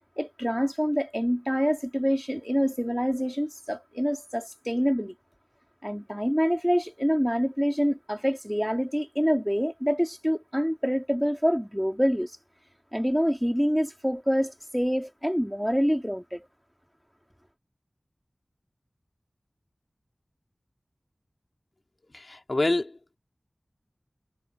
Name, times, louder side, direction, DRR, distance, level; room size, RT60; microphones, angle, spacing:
voice 1, 0.2-5.1 5.8-12.3 12.9-16.5, equal, ahead, 2.2 m, -26 dB
voice 2, 22.1-23.2, left 2 dB, 50° left, 2.9 m, -27 dB
wide cardioid pair, 60°, 0 cm